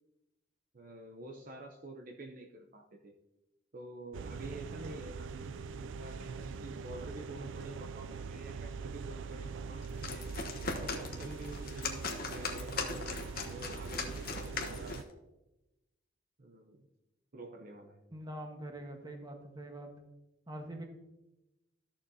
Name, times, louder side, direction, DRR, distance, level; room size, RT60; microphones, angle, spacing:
voice 1, 0.7-3.1 3.7-10.3 10.7-14.9 16.4-16.9 17.3-18.0, right 2 dB, 45° right, 2 dB, 0.7 m, -48 dB
sound 1, 4.1-15.0, right 5 dB, 75° right, 0.3 m, -42 dB
sound 2, 9.8-15.1, left 4 dB, 50° left, 1.0 m, -39 dB
voice 2, 18.1-19.9 20.5-20.8, right 1 dB, 20° right, 3 dB, 1.2 m, -44 dB
13.5 x 6.7 x 2.7 m, 0.97 s
head